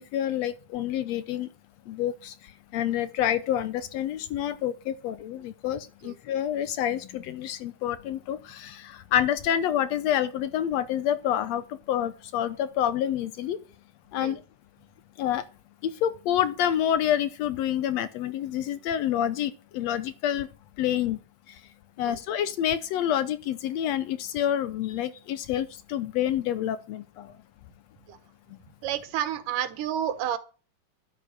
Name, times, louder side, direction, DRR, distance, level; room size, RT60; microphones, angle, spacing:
voice 1, 0.0-1.5 1.9-2.3 2.7-13.6 14.1-14.4 15.2-15.4 15.8-20.5 20.8-21.2 21.5-21.6 22.0-27.3, left 10 dB, 75° left, 15 dB, 1.6 m, -28 dB
voice 2, 28.8-30.4, right 10 dB, 80° right, 13 dB, 2.7 m, -30 dB
11.5 x 7.3 x 6.5 m, 0.36 s
omnidirectional pair, 3.7 m